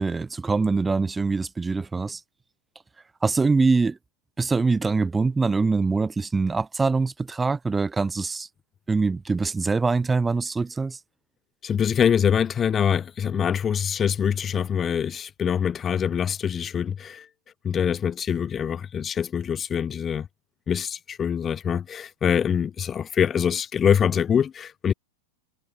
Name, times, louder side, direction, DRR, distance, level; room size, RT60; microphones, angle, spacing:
voice 1, 0.0-2.2 3.2-4.0 4.4-8.5 8.9-11.0, right 4 dB, 10° right, 0.7 m, -23 dB
voice 2, 11.6-17.3 17.6-20.3 20.7-24.9, left 8 dB, 25° left, 0.5 m, -24 dB
figure-of-eight pair, 90°, 0 cm